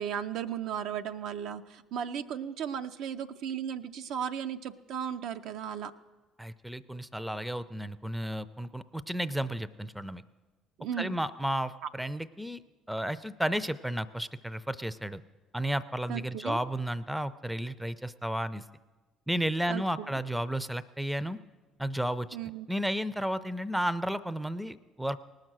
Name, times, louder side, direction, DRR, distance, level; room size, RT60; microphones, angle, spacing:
voice 1, 0.0-5.9 10.8-11.2 16.1-16.6 19.7-20.1 22.3-22.7, right 8 dB, 65° right, 8 dB, 0.5 m, -35 dB
voice 2, 6.4-10.2 11.0-12.6 12.9-15.2 15.5-18.6 19.3-21.4 21.8-22.3 22.7-25.3, equal, 5° right, 15 dB, 0.5 m, -33 dB
18.5 x 6.5 x 6.1 m, 1.2 s
hypercardioid pair, 60°, 0 cm